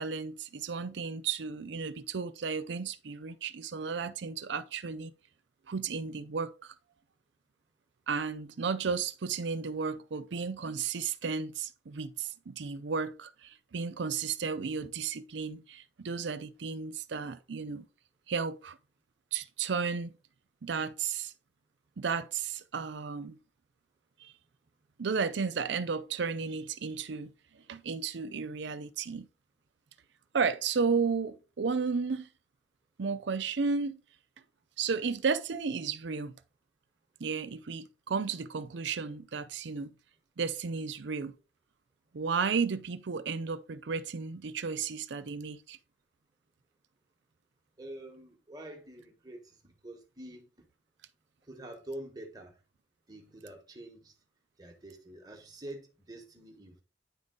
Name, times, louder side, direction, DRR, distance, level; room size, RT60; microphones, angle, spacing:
voice 1, 0.0-5.1 5.7-6.7 8.1-17.9 18.3-18.8 19.3-20.1 20.6-21.3 22.0-23.4 24.2-24.3 25.0-27.3 27.7-29.3 30.3-32.3 33.0-34.0 34.8-36.3 37.2-39.9 40.4-41.3 42.1-45.8, right 5 dB, 70° right, 0.5 m, -33 dB
voice 2, 47.8-50.7 51.4-52.6 53.1-54.2 54.6-56.8, right 1 dB, 20° right, 1.3 m, -46 dB
9.7 x 3.7 x 3.8 m
head